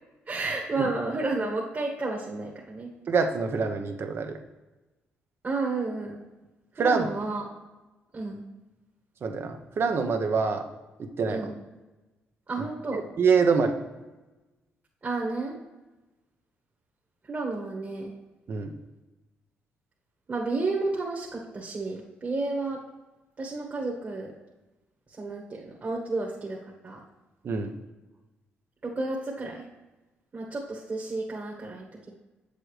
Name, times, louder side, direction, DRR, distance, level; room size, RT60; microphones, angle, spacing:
voice 1, 0.3-2.9 5.4-6.2 6.8-7.5 8.1-8.4 11.3-11.6 12.5-13.0 15.0-15.5 17.3-18.1 20.3-22.8 23.4-24.3 25.2-27.0 28.8-29.6 30.3-32.1, right 3 dB, 40° right, -1 dB, 1.6 m, -31 dB
voice 2, 3.1-4.4 6.8-7.1 9.2-10.6 11.0-11.5 12.6-12.7 12.9-13.8 18.5-18.7 27.4-27.7, right 5 dB, 55° right, 5 dB, 1.0 m, -25 dB
7.6 x 6.9 x 3.3 m, 1.1 s
supercardioid pair, 55°, 5 cm